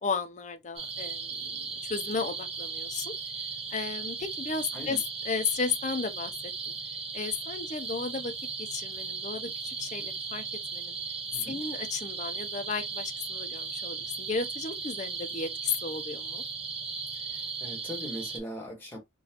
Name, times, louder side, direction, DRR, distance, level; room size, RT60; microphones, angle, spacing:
voice 1, 0.0-3.1 3.7-6.7 7.1-8.3 8.6-10.4 10.7-11.0 11.4-16.4, left 5 dB, 40° left, 0.5 m, -34 dB
sound 1, 0.8-18.4, right 5 dB, 30° right, 0.6 m, -37 dB
voice 2, 17.1-19.0, equal, 10° left, 1.4 m, -40 dB
3.8 x 2.4 x 2.9 m
head